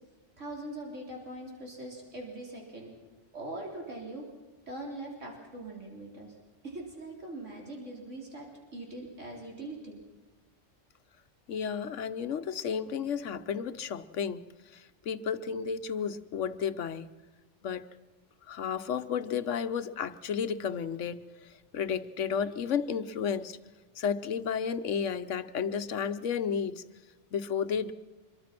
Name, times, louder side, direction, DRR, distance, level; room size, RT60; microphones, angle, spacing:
voice 1, 0.4-2.9 3.3-4.3 4.7-6.3 6.6-10.0, right 1 dB, 85° right, -1 dB, 4.2 m, -42 dB
voice 2, 11.5-14.4 14.7-17.1 17.6-17.9 18.5-21.2 21.7-23.6 24.0-26.8 27.3-27.9, left 7 dB, 85° left, 12 dB, 1.2 m, -32 dB
25.0 x 22.5 x 6.0 m, 1.2 s
omnidirectional pair, 1.2 m